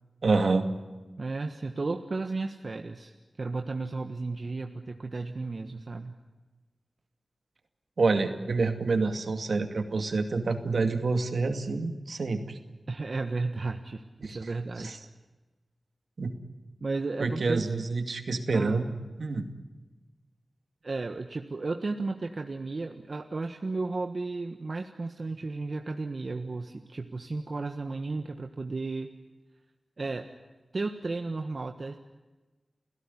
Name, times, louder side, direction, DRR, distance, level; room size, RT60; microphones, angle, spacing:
voice 1, 0.2-0.7 8.0-12.6 14.2-14.4 14.8-15.0 16.2-16.3 17.2-18.9 19.2-19.5, right 3 dB, 80° right, 7 dB, 2.4 m, -27 dB
voice 2, 1.2-6.1 12.9-15.0 16.8-17.7 18.5-18.9 20.8-29.1 30.0-30.3 30.7-32.0, right 3 dB, 60° right, 5 dB, 1.4 m, -34 dB
30.0 x 16.5 x 9.9 m, 1.2 s
cardioid pair, 45°, 0 cm